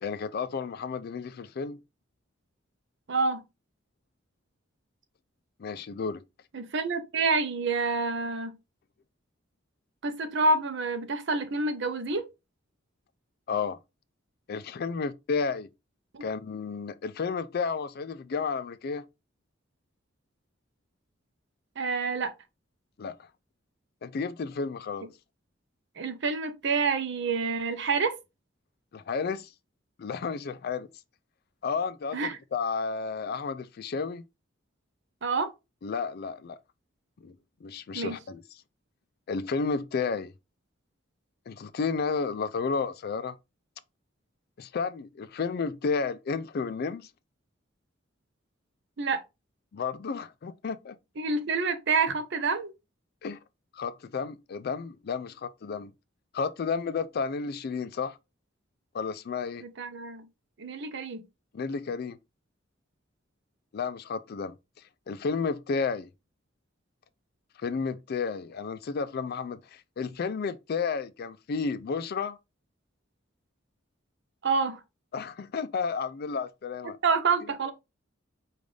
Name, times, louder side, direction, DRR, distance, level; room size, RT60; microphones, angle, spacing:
voice 1, 0.0-1.8 5.6-6.2 13.5-13.8 14.5-15.7 16.2-19.0 23.0-23.3 24.0-25.1 28.9-29.5 30.0-30.9 31.6-34.2 35.8-36.6 37.2-37.4 37.6-38.4 39.3-40.3 41.5-43.4 44.6-47.1 49.7-51.0 53.2-53.4 53.7-55.9 56.3-58.2 58.9-59.6 61.5-62.2 63.7-64.6 65.1-66.1 67.6-72.4 75.1-77.0, left 5 dB, 55° left, 0.4 m, -32 dB
voice 2, 3.1-3.4 6.5-8.6 10.0-12.2 16.1-16.2 21.8-22.3 26.0-28.1 32.1-32.4 35.2-35.5 37.9-38.1 49.0-49.2 51.2-52.7 59.6-60.2 60.6-61.2 74.4-74.8 76.8-77.7, right 4 dB, 65° right, 0.7 m, -28 dB
5.2 x 2.5 x 3.3 m
head